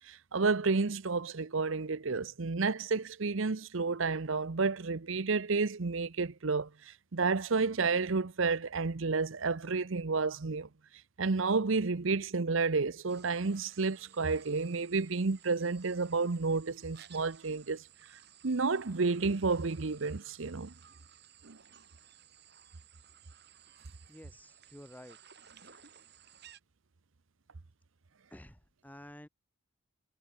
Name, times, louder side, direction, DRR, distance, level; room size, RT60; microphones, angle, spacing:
voice 1, 0.1-10.7 11.2-17.8 18.4-20.7 21.4-21.6, right 4 dB, 70° right, 0.8 m, -31 dB
sound 1, 13.1-26.6, right 9 dB, 50° right, 7.8 m, -58 dB
voice 2, 24.1-25.2 25.6-25.8 28.3-29.3, equal, 10° left, 1.8 m, -51 dB
head